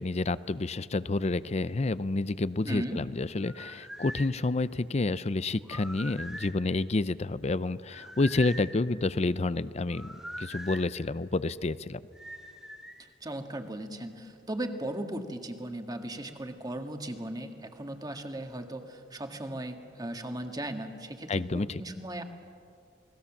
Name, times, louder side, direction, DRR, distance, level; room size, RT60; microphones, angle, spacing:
voice 1, 0.0-10.1 10.4-12.0 21.3-21.8, left 2 dB, 40° left, 16 dB, 0.6 m, -29 dB
voice 2, 2.6-3.0 13.2-22.2, right 1 dB, 20° right, 5 dB, 1.7 m, -37 dB
sound 1, 3.4-4.3 5.6-6.6 7.9-8.7 9.9-10.8 12.1-13.0, equal, 5° right, 1.7 m, -42 dB
28.5 x 20.0 x 7.3 m, 2.3 s
head